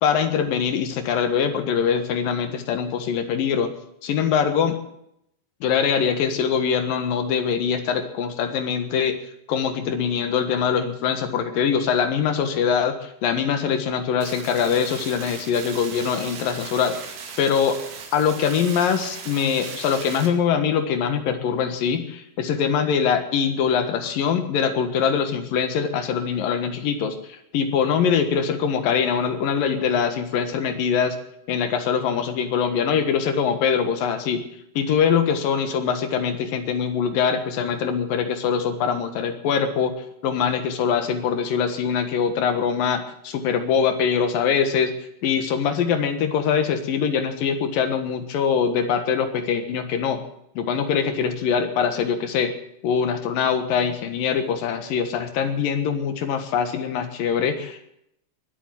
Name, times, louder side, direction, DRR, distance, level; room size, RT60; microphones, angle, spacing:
voice 1, 0.0-3.7 4.0-4.8 5.6-9.2 9.5-17.0 17.4-17.8 18.1-31.2 31.5-34.4 34.8-39.9 40.2-44.9 45.2-50.2 50.6-52.5 52.8-57.9, left 7 dB, 65° left, 8 dB, 2.9 m, -23 dB
sound 1, 14.2-20.3, right 6 dB, 80° right, 4.3 m, -38 dB
21.5 x 8.3 x 7.4 m, 0.75 s
omnidirectional pair, 4.7 m